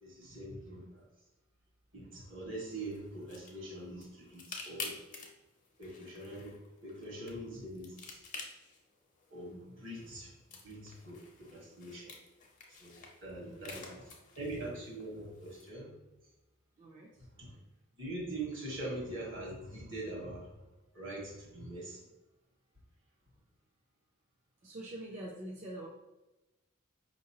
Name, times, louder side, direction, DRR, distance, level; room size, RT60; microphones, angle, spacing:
voice 1, 0.0-1.0 1.9-5.0 5.8-6.5 6.8-8.2 9.3-10.3 10.6-12.1 12.8-14.0 14.4-15.9 17.4-17.5 18.0-20.5 20.9-22.0, right 1 dB, 70° right, -2 dB, 1.4 m, -43 dB
sound 1, 2.7-15.7, left 4 dB, 40° left, 0.7 m, -50 dB
voice 2, 13.4-13.8 16.8-17.3 24.6-25.9, right 1 dB, 35° right, -3 dB, 0.5 m, -45 dB
5.1 x 2.9 x 2.8 m, 1.0 s
head